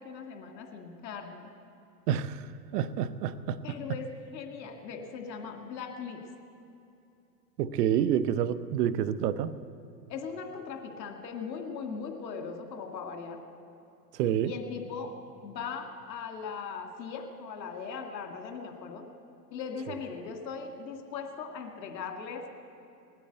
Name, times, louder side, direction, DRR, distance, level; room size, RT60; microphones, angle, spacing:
voice 1, 0.0-1.5 3.6-6.2 10.1-13.4 14.4-15.1 15.4-19.0 19.5-22.4, left 5 dB, 80° left, 4 dB, 2.2 m, -39 dB
voice 2, 2.1-2.5 2.7-3.8 7.6-9.5 14.1-14.5, right 10 dB, 65° right, 14 dB, 0.9 m, -28 dB
19.5 x 9.2 x 8.0 m, 2.7 s
hypercardioid pair, 110°, 50 cm